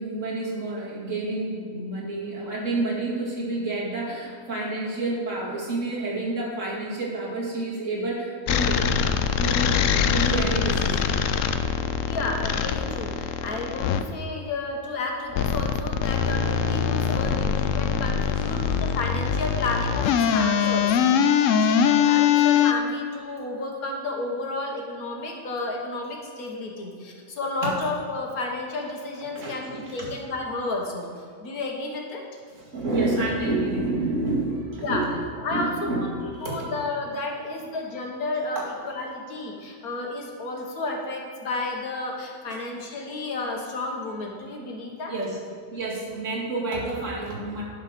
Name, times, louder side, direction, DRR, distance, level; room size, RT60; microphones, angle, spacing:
voice 1, 0.0-8.9 9.4-11.2 13.8-13.9 17.0-17.3 18.4-18.5 27.6-27.8 29.3-30.1 32.7-35.1 35.5-36.7 38.6-38.7 40.6-40.7 45.1-45.4 45.7-47.6, right 2 dB, 55° right, -4 dB, 2.5 m, -29 dB
sound 1, 8.5-14.0 15.3-22.7, left 8 dB, 70° left, 0.9 m, -23 dB
voice 2, 12.0-31.1 31.4-32.2 34.8-35.0 35.4-36.1 36.4-45.1, left 2 dB, 90° left, 1 dB, 1.9 m, -32 dB
11.5 x 4.9 x 6.7 m, 2.2 s
omnidirectional pair, 1.5 m